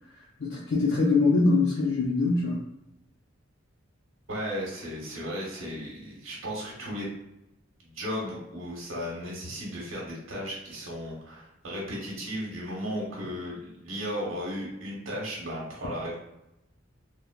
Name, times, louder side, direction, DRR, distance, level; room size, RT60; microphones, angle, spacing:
voice 1, 0.4-2.6, left 3 dB, 70° left, -4 dB, 0.5 m, -23 dB
voice 2, 4.3-7.1 7.8-16.2, equal, 85° right, -3 dB, 1.0 m, -35 dB
3.3 x 2.1 x 2.2 m, 0.88 s
head